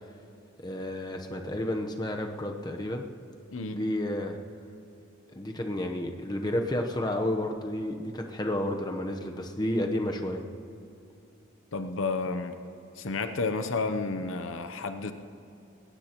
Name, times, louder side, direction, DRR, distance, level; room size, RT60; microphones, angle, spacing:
voice 1, 0.6-3.0 3.7-4.4 5.3-10.4, left 1 dB, 20° left, 3 dB, 0.9 m, -31 dB
voice 2, 3.5-3.8 11.7-12.5 13.0-15.1, left 3 dB, 75° left, 8 dB, 0.7 m, -31 dB
20.5 x 18.0 x 3.0 m, 2.7 s
head